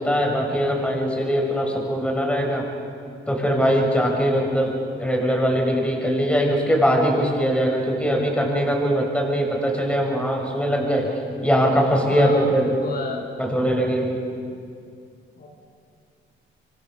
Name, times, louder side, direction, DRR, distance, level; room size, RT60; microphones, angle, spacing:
voice 1, 0.0-2.6 3.3-11.1 11.4-12.8 13.4-14.2, equal, 5° left, 0 dB, 7.1 m, -21 dB
voice 2, 12.1-13.2 14.5-14.6 15.4-15.5, left 3 dB, 50° left, 2 dB, 4.3 m, -33 dB
27.0 x 24.5 x 7.1 m, 2.3 s
cardioid pair, 90°, 20 cm